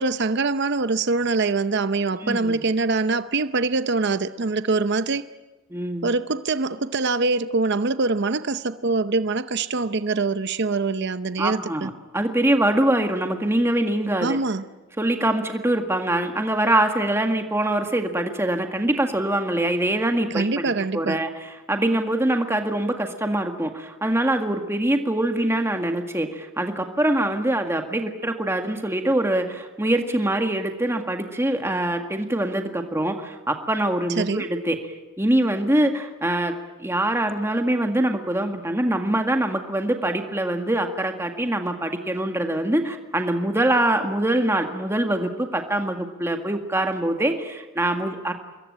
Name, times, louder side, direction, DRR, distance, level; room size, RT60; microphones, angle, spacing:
voice 1, 0.0-5.3 6.0-11.9 14.2-14.6 20.3-21.2 34.1-34.4, right 3 dB, 60° right, 0.8 m, -24 dB
voice 2, 2.2-2.5 5.7-6.1 11.4-14.4 15.0-20.5 20.9-21.3 21.7-34.8 35.2-36.5 36.8-48.3, right 1 dB, 15° right, 1.8 m, -24 dB
26.0 x 22.0 x 8.9 m
head